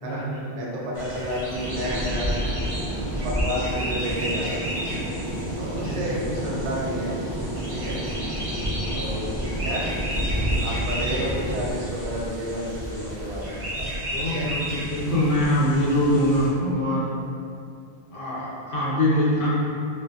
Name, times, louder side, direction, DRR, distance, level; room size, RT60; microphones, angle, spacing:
voice 1, 0.0-0.6 5.8-6.2 14.1-17.1 18.1-19.6, left 1 dB, 60° left, -8 dB, 0.8 m, -23 dB
voice 2, 0.5-2.3 3.2-4.8 5.6-7.1 7.7-8.0 8.9-9.3 9.6-9.9 10.6-13.6 14.2-14.5, equal, 90° right, -4 dB, 0.9 m, -31 dB
sound 1, 0.9-16.5, equal, 40° right, 0.5 m, -31 dB
Fixed-wing aircraft airplane, 1.5-11.7, right 1 dB, 25° left, 0.9 m, -32 dB
2.6 x 2.1 x 2.3 m, 2.5 s
omnidirectional pair, 1.1 m